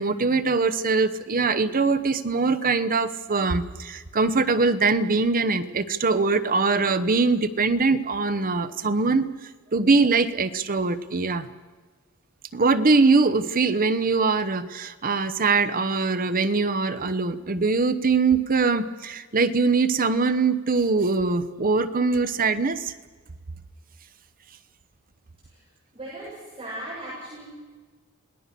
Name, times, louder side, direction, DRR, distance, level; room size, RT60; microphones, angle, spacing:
voice 1, 0.0-11.5 12.5-22.9, right 4 dB, 40° right, 12 dB, 0.9 m, -22 dB
voice 2, 25.9-27.4, right 1 dB, 25° right, -8 dB, 7.9 m, -37 dB
28.0 x 19.5 x 6.8 m, 1.3 s
head